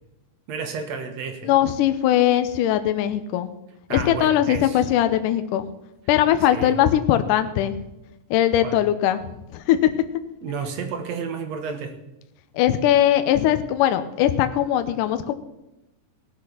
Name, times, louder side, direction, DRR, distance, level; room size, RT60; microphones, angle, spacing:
voice 1, 0.5-1.5 3.9-4.8 6.5-6.8 8.6-8.8 10.4-12.0, right 5 dB, 60° right, 6 dB, 2.2 m, -31 dB
voice 2, 1.4-3.5 3.9-5.7 6.1-7.8 8.3-9.2 9.5-9.9 12.5-15.3, left 11 dB, 80° left, 10 dB, 2.3 m, -20 dB
19.5 x 6.6 x 5.7 m, 0.92 s
omnidirectional pair, 3.8 m